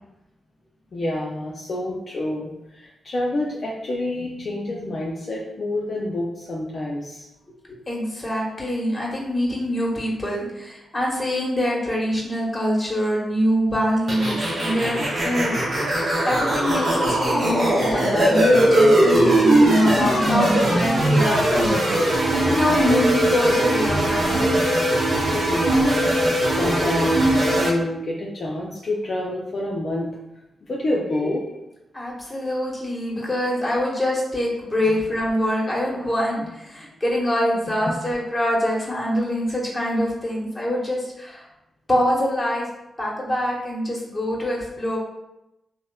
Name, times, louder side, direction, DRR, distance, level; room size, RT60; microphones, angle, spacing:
voice 1, 0.9-7.3 25.5-30.1 30.6-31.6 34.8-34.9 37.9-38.0, left 1 dB, 60° left, -4 dB, 0.4 m, -28 dB
voice 2, 7.5-15.6 15.9-24.5 31.9-41.4 41.9-42.6 43.0-45.0, equal, 25° left, -4 dB, 1.0 m, -24 dB
sound 1, 14.1-27.7, right 1 dB, 60° right, 0.7 m, -20 dB
2.8 x 2.0 x 2.3 m, 0.90 s
supercardioid pair, 40°, 0 cm